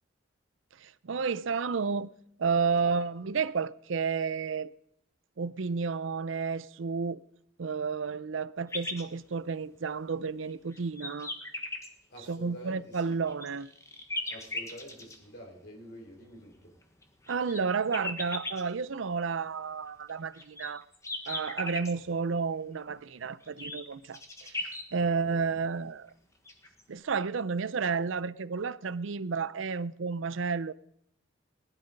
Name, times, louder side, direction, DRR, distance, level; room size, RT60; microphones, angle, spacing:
voice 1, 0.8-2.1 2.4-4.7 5.4-7.2 7.6-11.3 12.3-13.7 17.3-20.8 21.3-26.1 26.9-30.7, right 5 dB, 80° right, 0.5 m, -31 dB
sound 1, 8.7-9.0 9.8-9.9 10.5-11.9 12.9-15.2 16.8-18.6 20.1-21.9 23.4-24.8 26.1-26.2 26.5-26.8, left 2 dB, 15° left, 1.4 m, -37 dB
voice 2, 12.1-13.2 14.3-16.7 25.0-25.4, equal, 55° left, 4.1 m, -48 dB
19.0 x 11.0 x 5.3 m
head